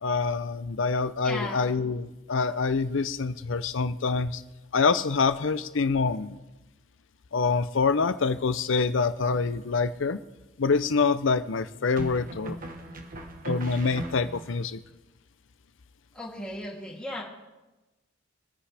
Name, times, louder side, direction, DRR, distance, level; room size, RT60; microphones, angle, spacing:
voice 1, 0.0-4.4 4.7-6.4 7.3-10.2 10.6-12.6 13.4-14.8, left 4 dB, 70° left, 13 dB, 0.6 m, -26 dB
voice 2, 1.2-1.6 16.1-17.2, left 1 dB, 5° left, -5 dB, 2.9 m, -35 dB
sound 1, 9.3-9.9 12.0-14.6, right 1 dB, 45° right, 1.3 m, -39 dB
24.5 x 9.9 x 3.4 m, 1.1 s
head